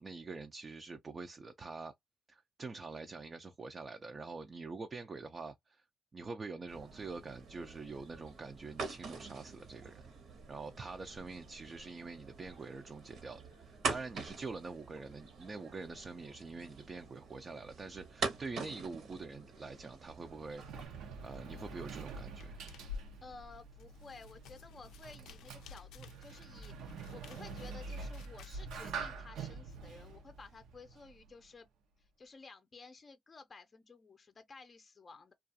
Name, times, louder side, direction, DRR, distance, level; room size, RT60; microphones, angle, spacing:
voice 1, 0.0-1.9 2.3-5.8 6.1-10.1 10.5-22.6, right 3 dB, 35° right, 0.4 m, -45 dB
sound 1, 6.7-20.9, right 4 dB, 70° right, 0.9 m, -44 dB
Sliding door, 20.0-31.5, right 5 dB, 85° right, 0.6 m, -46 dB
sound 2, 21.5-28.5, left 5 dB, 85° left, 0.4 m, -52 dB
voice 2, 23.2-31.7 32.0-35.3, left 4 dB, 35° left, 0.5 m, -54 dB
2.4 x 2.3 x 2.6 m
cardioid pair, 90°, 0 cm